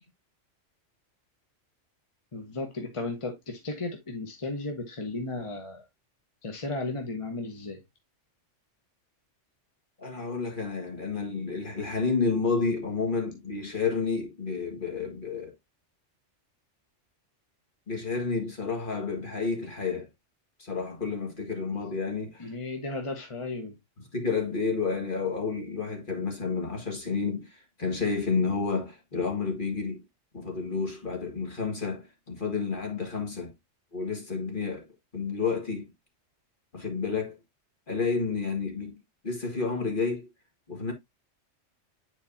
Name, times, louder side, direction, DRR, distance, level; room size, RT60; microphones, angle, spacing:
voice 1, 2.3-5.9 6.4-7.8 22.4-23.8, left 2 dB, 25° left, 1.1 m, -35 dB
voice 2, 10.0-15.5 17.9-20.1 20.6-22.5 24.1-30.0 30.3-33.5 33.9-34.8 35.1-35.9 36.7-37.4 37.9-40.3 40.7-40.9, left 4 dB, 45° left, 1.9 m, -30 dB
9.4 x 4.5 x 2.7 m
omnidirectional pair, 1.3 m